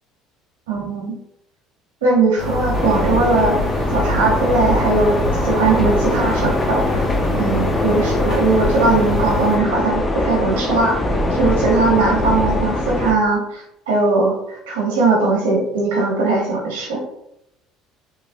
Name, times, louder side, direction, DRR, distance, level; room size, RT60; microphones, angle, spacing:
voice 1, 0.7-1.1 2.0-3.6 3.9-11.0 11.3-17.0, right 3 dB, 85° right, -2 dB, 0.9 m, -19 dB
sound 1, 2.4-9.6, left 1 dB, 60° left, 1.0 m, -24 dB
sound 2, 2.7-13.1, left 1 dB, 25° left, 0.5 m, -22 dB
3.2 x 2.1 x 2.6 m, 0.81 s
hypercardioid pair, 65°, 0 cm